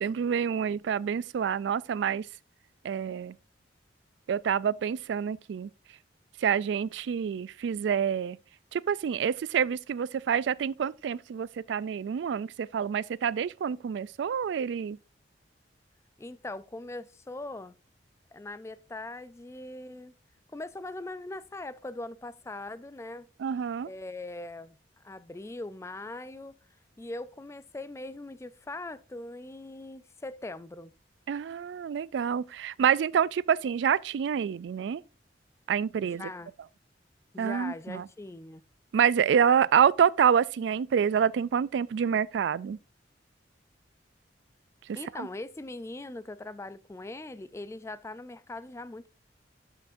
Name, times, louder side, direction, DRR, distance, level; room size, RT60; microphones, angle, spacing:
voice 1, 0.0-2.3 2.8-3.4 4.3-5.7 6.4-8.4 8.7-15.0 23.4-23.9 31.3-35.0 35.7-36.2 37.4-38.0 38.9-42.8 45.2-45.3, right 7 dB, 70° right, 0.3 m, -27 dB
voice 2, 16.2-17.7 18.3-20.1 20.5-23.3 23.8-26.6 27.0-30.9 36.0-36.5 37.3-38.6 39.5-39.6 44.9-49.1, left 2 dB, 15° left, 0.3 m, -41 dB
12.0 x 5.8 x 2.6 m
head